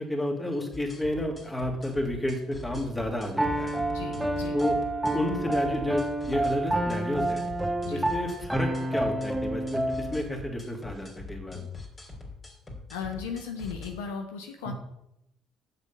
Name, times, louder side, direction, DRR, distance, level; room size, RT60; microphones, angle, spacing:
voice 1, 0.0-3.7 4.5-4.8 5.1-7.4 7.9-11.6 14.7-14.8, left 1 dB, 15° left, 2 dB, 2.4 m, -31 dB
sound 1, 0.7-13.9, left 3 dB, 30° left, 3.0 m, -43 dB
Piano, 3.4-10.2, right 1 dB, 10° right, 1.0 m, -29 dB
voice 2, 3.9-4.6 7.8-8.0 12.9-14.7, left 6 dB, 75° left, 4 dB, 0.8 m, -36 dB
8.1 x 6.8 x 5.4 m, 0.82 s
figure-of-eight pair, 50°, 0 cm